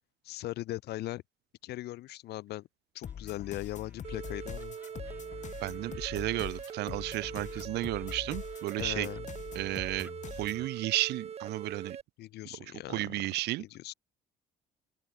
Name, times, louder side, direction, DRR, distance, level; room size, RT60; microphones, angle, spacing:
voice 1, 0.2-1.2 1.6-2.7 2.9-4.8 8.8-9.3 12.2-13.1 13.6-13.9, left 16 dB, 75° left, 1.5 m, -39 dB
sound 1, 3.0-10.7, left 8 dB, 45° left, 3.7 m, -44 dB
Laughter, 3.0-9.2 9.6-10.8, right 2 dB, 10° right, 6.6 m, -61 dB
sound 2, 4.0-12.0, right 8 dB, 40° right, 1.0 m, -42 dB
voice 2, 5.6-9.1 9.5-10.1 10.4-12.0 12.9-13.6, right 18 dB, 80° right, 1.1 m, -33 dB
open air
cardioid pair, 110°, 17 cm